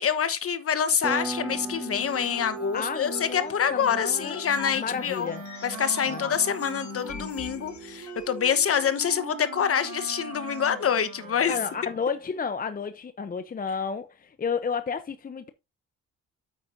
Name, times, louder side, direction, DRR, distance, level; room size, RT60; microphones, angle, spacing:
voice 1, 0.0-5.3 5.6-11.6, left 8 dB, 50° left, 1.2 m, -26 dB
Piano, 1.0-11.4, right 2 dB, 5° right, 0.5 m, -42 dB
sound 1, 1.3-8.4, left 2 dB, 70° left, 2.2 m, -41 dB
voice 2, 2.7-4.4 4.8-5.4 6.1-6.3 11.5-15.5, left 5 dB, 30° left, 0.8 m, -31 dB
Wind instrument woodwind instrument, 4.8-12.3, right 5 dB, 90° right, 3.7 m, -42 dB
8.6 x 8.4 x 2.7 m
cardioid pair, 90°, 30 cm